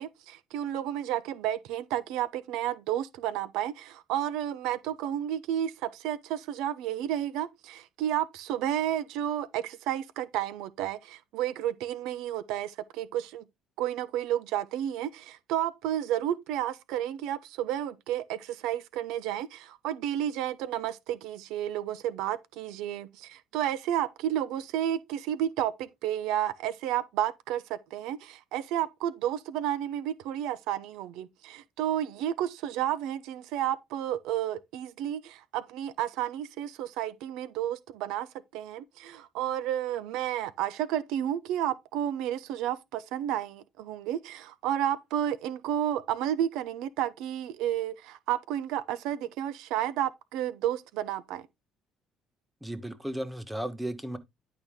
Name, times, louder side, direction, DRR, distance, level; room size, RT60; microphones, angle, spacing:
voice 1, 0.0-13.4 13.8-38.3 38.5-51.4, right 11 dB, 85° right, 0.7 m, -31 dB
voice 2, 52.6-54.2, right 1 dB, 10° right, 1.3 m, -35 dB
10.5 x 4.6 x 3.6 m
cardioid pair, 105°, 0 cm